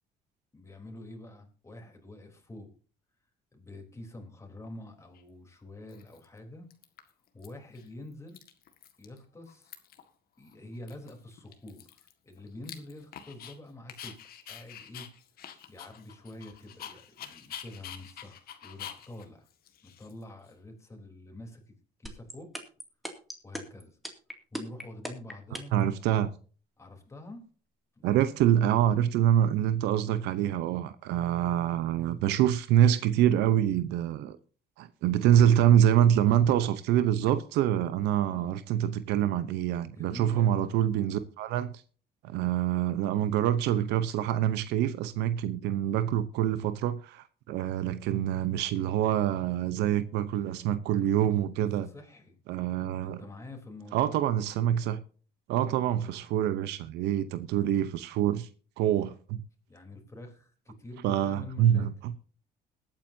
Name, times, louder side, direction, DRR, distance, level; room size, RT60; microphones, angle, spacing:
voice 1, 0.5-2.7 3.5-6.7 7.3-8.4 9.0-9.7 10.4-14.2 14.5-15.1 15.7-19.5 19.8-21.7 22.0-22.5 23.4-24.0 24.5-25.7 26.8-27.4 28.0-28.4 38.3-38.6 39.9-40.8 51.6-52.4 53.0-54.3 55.6-55.9 59.7-61.9, left 1 dB, 15° left, 3.5 m, -47 dB
Dog, 5.1-5.2 5.9-6.4 6.7-7.5 7.7-7.9 8.1-9.2 9.4-10.1 10.4-10.5 10.9-13.5 13.9-20.5, left 9 dB, 65° left, 1.8 m, -46 dB
sound 1, 22.1-25.8, equal, ahead, 2.4 m, -37 dB
voice 2, 25.7-26.3 28.0-34.4 34.8-41.7 42.2-51.9 52.5-53.2 53.9-55.0 55.5-58.5 58.8-59.4 61.0-61.9, right 10 dB, 85° right, 0.8 m, -26 dB
21.0 x 9.0 x 2.7 m
cardioid pair, 110°, 17 cm